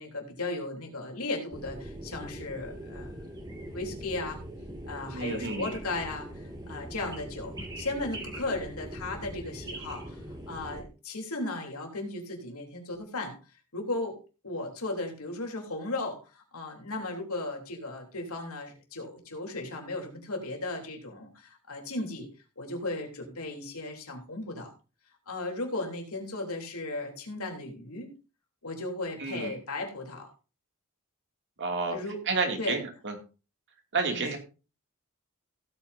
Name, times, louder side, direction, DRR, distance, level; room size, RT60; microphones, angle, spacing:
voice 1, 0.0-3.1 3.7-4.4 4.9-13.3 13.7-14.2 14.4-22.3 22.6-24.7 25.3-28.1 28.6-30.3 31.9-32.2 32.6-32.8 34.1-34.3, left 2 dB, 70° left, 2 dB, 3.4 m, -36 dB
sound 1, 1.5-10.8, right 1 dB, 20° right, 2.2 m, -41 dB
voice 2, 5.1-5.7 29.2-29.5 31.6-32.0 32.3-33.1 33.9-34.4, right 3 dB, 55° right, 4 dB, 2.5 m, -30 dB
16.5 x 8.8 x 2.7 m, 0.32 s
head